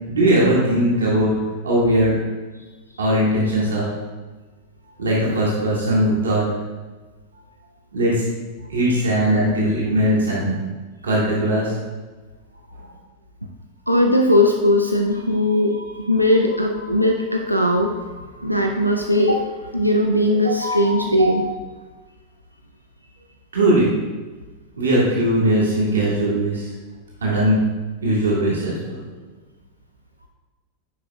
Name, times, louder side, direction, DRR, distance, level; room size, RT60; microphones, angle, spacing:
voice 1, 0.1-1.3 1.6-2.1 3.0-3.9 5.0-6.5 7.9-8.3 8.6-10.5 11.0-11.7 20.3-21.3 23.5-23.9 24.8-26.7 27.2-27.6 28.0-29.2, right 1 dB, 70° right, -5 dB, 1.7 m, -20 dB
voice 2, 13.9-21.4, left 1 dB, 90° right, 1 dB, 0.5 m, -19 dB
10.5 x 4.9 x 2.3 m, 1.3 s
figure-of-eight pair, 90°, 0 cm